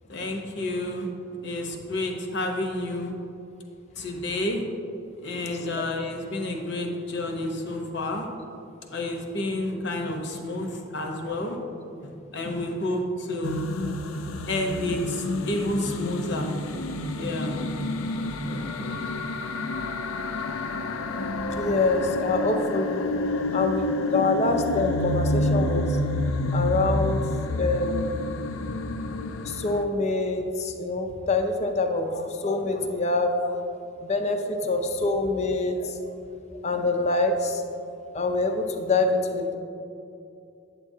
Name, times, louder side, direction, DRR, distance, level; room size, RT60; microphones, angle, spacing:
voice 1, 0.1-1.1 1.4-3.1 4.0-4.6 5.2-8.3 8.9-11.6 12.0-13.6 14.1-19.2, left 1 dB, 55° left, 2 dB, 0.8 m, -30 dB
sound 1, 13.4-29.8, left 1 dB, 90° left, 0.4 m, -29 dB
voice 2, 21.6-23.1 23.5-26.0 26.5-27.2 27.5-28.1 29.4-33.5 34.0-35.9 36.6-37.6 38.1-39.6, left 3 dB, 35° left, 5 dB, 0.5 m, -25 dB
8.7 x 7.4 x 2.7 m, 2.7 s
head